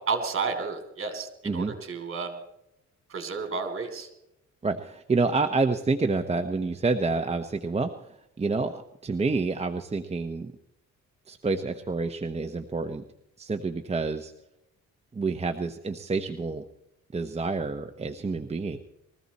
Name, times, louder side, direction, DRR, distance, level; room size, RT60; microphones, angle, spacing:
voice 1, 0.1-2.4 3.1-4.1, right 4 dB, 45° right, 7 dB, 3.0 m, -31 dB
voice 2, 4.6-10.5 11.3-13.0 13.4-14.3 15.1-16.6 17.1-18.8, right 3 dB, 20° right, 5 dB, 0.9 m, -28 dB
21.0 x 14.5 x 4.2 m, 0.83 s
cardioid pair, 90°, 30 cm